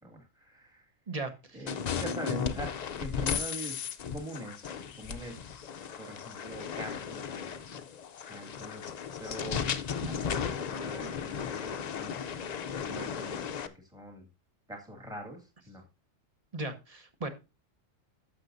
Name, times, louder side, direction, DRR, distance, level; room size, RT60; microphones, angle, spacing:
voice 1, 0.0-0.9 1.5-5.4 6.0-7.5 8.3-12.2 12.8-14.3 14.7-15.8, right 1 dB, 5° right, 1 dB, 2.0 m, -44 dB
voice 2, 1.1-1.6 10.0-10.1 16.5-17.3, right 2 dB, 30° right, 8 dB, 1.0 m, -37 dB
sound 1, 1.7-13.7, left 7 dB, 60° left, 0.4 m, -35 dB
11.5 x 6.9 x 2.6 m, 0.27 s
omnidirectional pair, 1.3 m